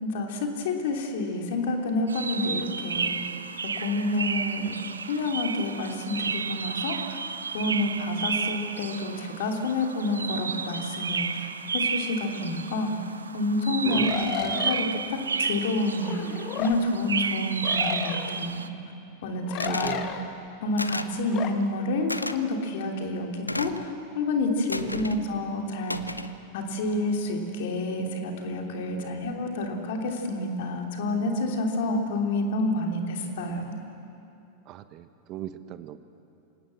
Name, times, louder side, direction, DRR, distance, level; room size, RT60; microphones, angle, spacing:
voice 1, 0.0-3.3 3.6-4.8 5.1-7.2 7.5-11.5 11.7-13.0 13.3-18.7 19.2-20.1 20.6-26.2 26.5-33.8, left 2 dB, 55° left, 2 dB, 3.2 m, -29 dB
sound 1, 2.1-18.7, right 5 dB, 75° right, 0.8 m, -32 dB
voice 2, 13.8-14.2 19.6-20.1 24.8-24.9 29.0-29.2 34.7-36.0, right 12 dB, 35° right, 12 dB, 0.9 m, -38 dB
sound 2, 13.9-14.9 16.0-16.8 17.6-18.5 19.5-20.3 21.3-21.5, left 9 dB, 35° left, 1.5 m, -33 dB
sound 3, 19.6-20.0 20.8-21.2 22.1-22.4 23.5-23.9 24.7-25.2 25.9-26.3, left 1 dB, 85° left, 0.8 m, -32 dB
27.0 x 18.0 x 7.5 m, 2.7 s
figure-of-eight pair, 90°, 0 cm